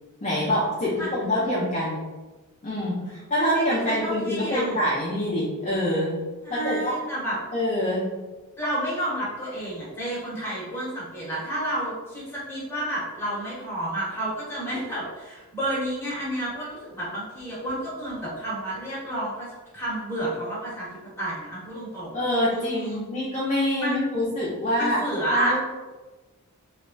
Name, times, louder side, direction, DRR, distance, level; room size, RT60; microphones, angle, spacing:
voice 1, 0.2-2.0 2.6-6.1 6.5-7.0 7.5-8.1 22.1-25.0 25.3-25.6, equal, 30° left, -7 dB, 0.5 m, -25 dB
voice 2, 3.3-4.8 6.4-7.4 8.6-20.9 21.2-22.2 22.5-23.0 23.8-24.0 24.8-25.5, right 1 dB, 10° left, -8 dB, 1.1 m, -30 dB
3.2 x 2.2 x 2.5 m, 1.2 s
head